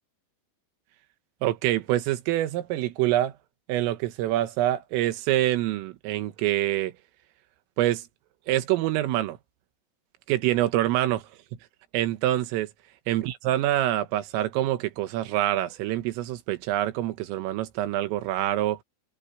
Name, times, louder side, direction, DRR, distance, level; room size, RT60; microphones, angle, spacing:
voice 1, 1.4-3.3 3.7-6.9 7.8-8.1 8.5-9.4 10.3-11.2 11.9-12.7 13.1-18.8, right 14 dB, 80° right, 3.9 m, -26 dB
omnidirectional pair, 6.0 m